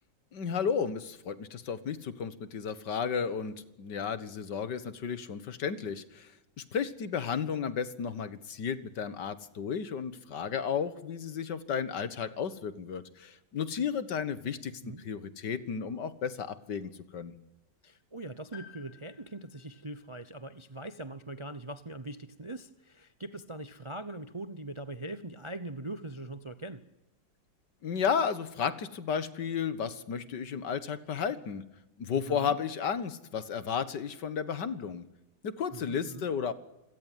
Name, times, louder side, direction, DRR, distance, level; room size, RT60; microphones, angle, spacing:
voice 1, 0.3-6.3 6.6-14.7 15.0-17.3 27.8-31.6 32.0-35.1 35.4-36.5, left 7 dB, 70° left, 14 dB, 2.1 m, -33 dB
voice 2, 17.8-26.8 32.3-32.6 35.7-36.3, right 2 dB, 25° right, 13 dB, 0.6 m, -42 dB
Piano, 18.5-22.4 22.7-22.8 23.9-24.0, left 8 dB, 85° left, 4.5 m, -58 dB
27.0 x 17.5 x 9.3 m, 0.95 s
omnidirectional pair, 1.9 m